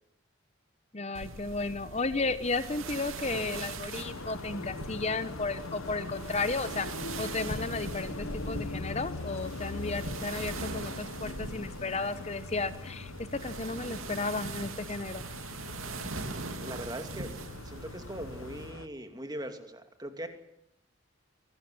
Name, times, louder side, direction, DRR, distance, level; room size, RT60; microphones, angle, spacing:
voice 1, 0.9-6.9 7.2-15.2, left 3 dB, 30° left, 13 dB, 1.0 m, -34 dB
sound 1, 1.1-18.7, right 3 dB, 85° right, 2.8 m, -41 dB
sound 2, 3.9-18.9, left 3 dB, 90° left, 1.2 m, -42 dB
voice 2, 16.6-20.3, right 1 dB, 20° right, 7 dB, 2.6 m, -41 dB
23.5 x 19.0 x 9.9 m, 0.79 s
head